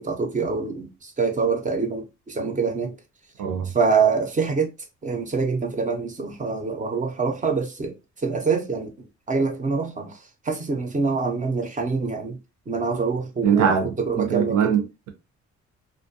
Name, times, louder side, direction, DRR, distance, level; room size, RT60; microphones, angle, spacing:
voice 1, 0.0-2.9 3.7-4.7 5.0-8.0 8.2-8.9 9.3-10.2 10.4-12.4 12.7-14.7, right 4 dB, 25° right, 0.6 m, -25 dB
voice 2, 3.4-3.7 13.4-15.1, right 7 dB, 80° right, 0.7 m, -22 dB
2.4 x 2.2 x 2.6 m
cardioid pair, 90°, 30 cm